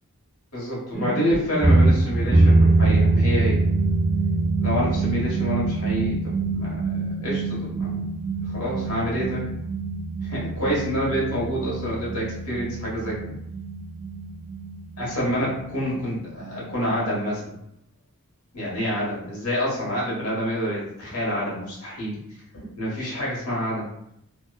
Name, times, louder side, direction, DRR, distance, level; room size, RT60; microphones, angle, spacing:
voice 1, 0.5-3.6 4.6-8.1 8.5-9.5 10.2-13.3 15.0-17.6 18.5-22.2 22.5-23.9, equal, 85° left, -6 dB, 1.2 m, -28 dB
sound 1, 0.9-17.1, right 2 dB, 10° left, 0.6 m, -24 dB
2.8 x 2.1 x 2.2 m, 0.78 s
head